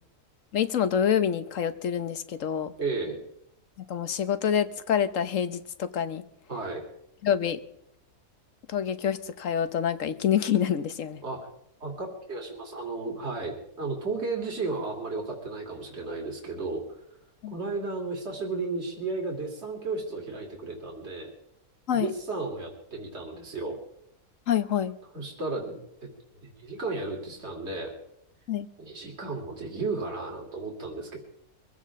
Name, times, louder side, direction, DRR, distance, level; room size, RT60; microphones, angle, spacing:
voice 1, 0.5-2.7 3.9-6.2 7.2-7.6 8.7-11.2 17.4-17.5 21.9-22.1 24.5-24.9 28.5-28.7, left 8 dB, 60° left, 12 dB, 1.3 m, -27 dB
voice 2, 2.8-3.2 6.5-6.9 11.2-11.5 11.8-17.0 17.5-21.3 21.9-23.8 25.1-26.1 26.4-27.9 28.8-31.2, right 3 dB, 45° right, 0 dB, 3.4 m, -34 dB
24.0 x 16.0 x 3.7 m, 0.76 s
omnidirectional pair, 1.7 m